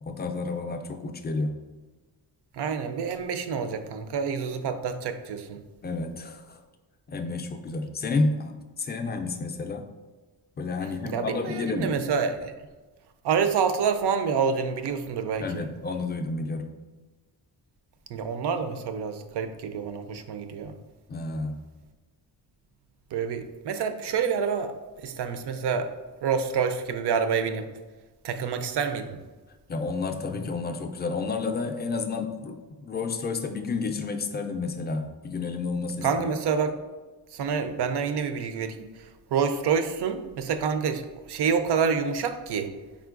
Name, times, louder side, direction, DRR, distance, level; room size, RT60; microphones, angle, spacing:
voice 1, 0.0-1.5 5.8-6.6 7.1-9.8 10.6-12.0 15.4-16.7 21.1-21.6 29.7-36.3, left 3 dB, 25° left, 5 dB, 0.3 m, -30 dB
voice 2, 2.5-5.6 11.0-12.5 13.2-15.7 18.1-20.7 23.1-25.9 26.2-27.7 28.2-29.2 36.0-36.7 37.3-41.0 41.3-42.7, right 6 dB, 75° right, 9 dB, 0.5 m, -27 dB
4.4 x 3.6 x 2.4 m, 1.3 s
wide cardioid pair, 100°, 41 cm